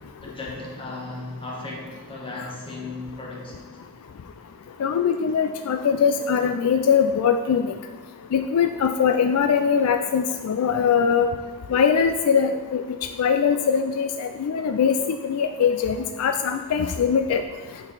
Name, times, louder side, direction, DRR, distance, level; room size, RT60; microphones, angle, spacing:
voice 1, 0.2-3.7, left 2 dB, 25° left, -3 dB, 1.5 m, -36 dB
voice 2, 4.8-7.7 8.3-11.3 11.7-17.4, left 7 dB, 75° left, 7 dB, 0.4 m, -22 dB
8.6 x 4.6 x 4.0 m, 1.5 s
head